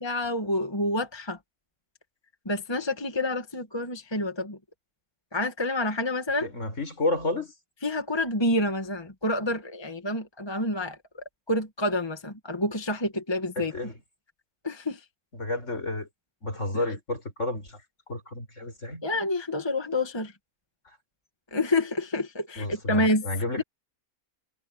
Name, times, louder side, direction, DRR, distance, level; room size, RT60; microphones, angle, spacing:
voice 1, 0.0-1.4 2.5-4.6 5.3-6.5 7.8-13.7 14.6-15.0 16.7-16.8 19.0-20.3 21.5-23.3 23.6-23.7, left 1 dB, 20° left, 1.7 m, -28 dB
voice 2, 6.4-7.5 13.6-13.9 15.3-16.1 16.4-17.8 18.1-19.0 22.6-23.6, left 2 dB, 55° left, 6.5 m, -31 dB
omnidirectional pair, 1.6 m